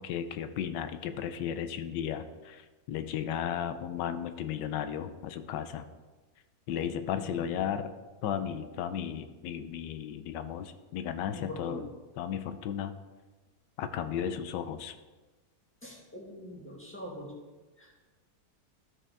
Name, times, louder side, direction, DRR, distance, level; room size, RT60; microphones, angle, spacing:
voice 1, 0.0-5.9 6.7-7.9 8.2-11.8 12.2-12.9 13.8-15.0, left 9 dB, 80° left, 10 dB, 1.3 m, -34 dB
voice 2, 11.3-11.8 15.8-17.3 17.8-17.9, left 1 dB, 5° left, -3 dB, 1.6 m, -43 dB
13.0 x 5.4 x 3.4 m, 1.3 s
omnidirectional pair, 1.8 m